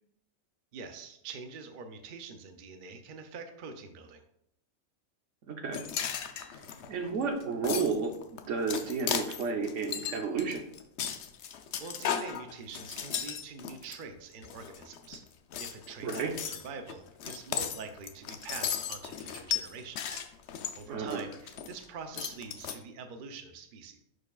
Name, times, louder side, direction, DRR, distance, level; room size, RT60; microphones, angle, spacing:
voice 1, 0.7-4.2 11.8-15.3 15.6-20.2 20.7-24.0, right 5 dB, 50° right, 6 dB, 0.7 m, -45 dB
voice 2, 5.5-5.9 6.3-6.5 6.9-8.2 8.5-10.6 16.0-16.4 20.9-21.2, right 4 dB, 65° right, 5 dB, 1.1 m, -32 dB
sound 1, 5.7-14.0 14.4-15.2 15.5-21.8 22.1-22.7, left 8 dB, 65° left, 0.8 m, -36 dB
11.0 x 4.5 x 2.4 m, 0.75 s
omnidirectional pair, 1.4 m